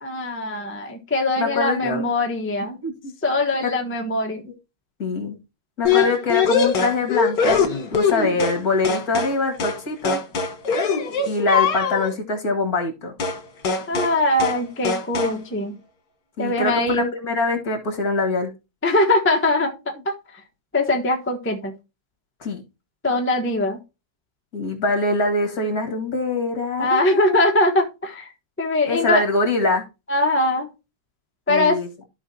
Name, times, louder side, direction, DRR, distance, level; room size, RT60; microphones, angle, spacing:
voice 1, 0.0-2.8 3.2-4.4 13.9-15.7 16.4-17.1 18.8-20.1 20.7-21.7 23.0-23.8 26.8-28.3 28.6-29.2 30.1-30.7 31.5-31.8, left 2 dB, 10° left, 1.0 m, -21 dB
voice 2, 1.4-2.0 2.8-3.1 3.6-3.7 4.5-4.6 5.0-5.4 5.8-7.6 7.9-10.2 11.3-13.1 16.4-18.5 22.4-22.6 24.5-27.4 28.9-29.8 31.5-31.9, left 2 dB, 50° left, 2.3 m, -23 dB
sound 1, 5.9-8.6 8.9-9.4 9.6-9.8 10.1-12.1 13.2-13.4 13.7-14.2 14.4-14.6 14.9-15.4, left 5 dB, 70° left, 2.0 m, -22 dB
14.0 x 4.9 x 2.8 m
omnidirectional pair, 2.0 m